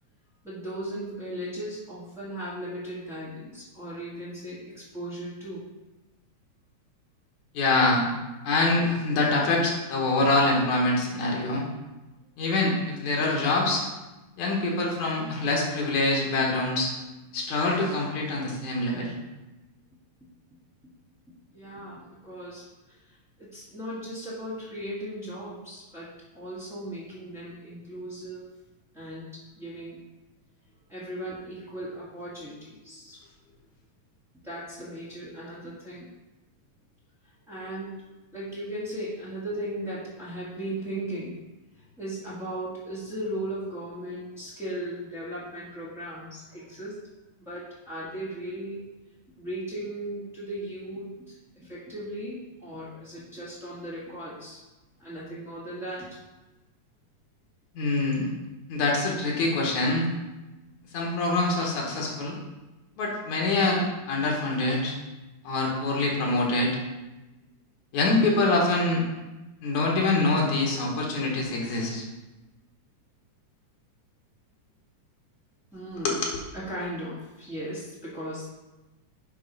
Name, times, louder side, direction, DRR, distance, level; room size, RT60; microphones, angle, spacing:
voice 1, 0.4-5.6 21.5-28.4 28.9-30.0 30.9-33.2 34.4-36.1 37.5-38.0 38.3-41.3 41.7-47.1 47.4-48.9 49.4-54.6 55.0-56.1 75.7-76.2 76.5-78.5, right 1 dB, 5° right, -10 dB, 0.4 m, -37 dB
voice 2, 7.5-8.0 8.4-11.7 12.4-13.8 14.4-16.9 17.3-19.1 57.8-58.3 58.7-60.1 60.9-62.4 63.0-64.9 65.4-66.8 67.9-69.0 69.6-72.0 76.0-76.3, left 2 dB, 75° left, -2 dB, 2.6 m, -25 dB
9.1 x 3.1 x 5.3 m, 1.1 s
omnidirectional pair, 3.3 m